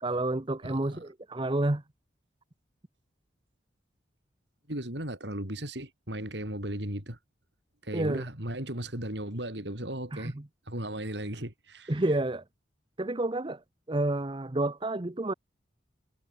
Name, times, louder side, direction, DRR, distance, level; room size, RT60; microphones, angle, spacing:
voice 1, 0.0-1.8 7.9-8.2 10.1-10.4 11.9-12.4 13.0-13.6 13.9-15.3, right 2 dB, 25° right, 0.9 m, -29 dB
voice 2, 0.6-1.0 4.7-7.2 7.8-10.3 10.7-12.0, right 1 dB, 65° right, 6.4 m, -36 dB
head